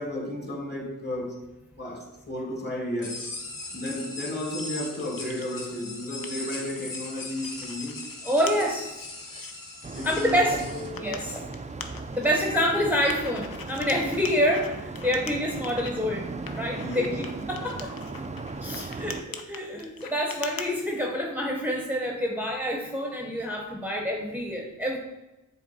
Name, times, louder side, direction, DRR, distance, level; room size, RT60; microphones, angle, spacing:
voice 1, 0.0-1.5 1.8-3.3 3.7-8.1 8.6-8.7 9.9-11.3 16.8-17.2, left 1 dB, 30° left, 1.5 m, -33 dB
sound 1, 3.0-10.9, left 2 dB, 75° left, 1.1 m, -39 dB
sound 2, 4.6-5.5 5.9-8.1 8.5-8.6 9.1-9.5 10.3-12.5 13.1-15.9 16.5-20.7, left 6 dB, 90° left, 0.6 m, -42 dB
voice 2, 8.2-8.9 10.0-10.6 11.0-11.5 12.1-18.0 18.6-25.0, equal, 5° right, 0.7 m, -27 dB
sound 3, 9.8-19.2, right 3 dB, 20° right, 0.3 m, -37 dB
7.5 x 3.2 x 4.0 m
wide cardioid pair, 65°, 34 cm